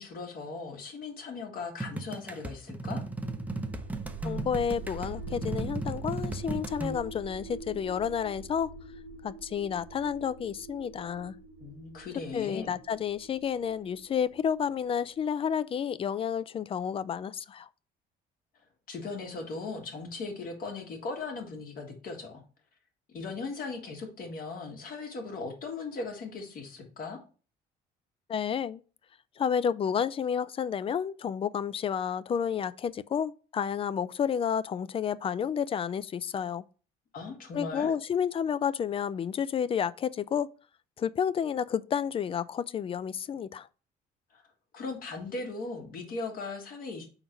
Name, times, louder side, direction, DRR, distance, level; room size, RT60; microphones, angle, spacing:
voice 1, 0.0-3.0 11.6-12.7 18.9-22.4 23.1-27.2 37.1-37.9 44.3-44.4 44.7-47.1, left 3 dB, 60° left, 2.0 m, -38 dB
sound 1, 1.8-7.0, right 2 dB, 10° right, 0.6 m, -36 dB
sound 2, 3.2-15.0, right 4 dB, 90° right, 0.8 m, -44 dB
voice 2, 4.2-8.7 9.2-11.4 12.3-17.7 28.3-28.8 29.4-36.6 37.5-40.5 41.0-43.7, left 8 dB, 35° left, 0.4 m, -30 dB
4.6 x 3.9 x 5.3 m
cardioid pair, 110°, 17 cm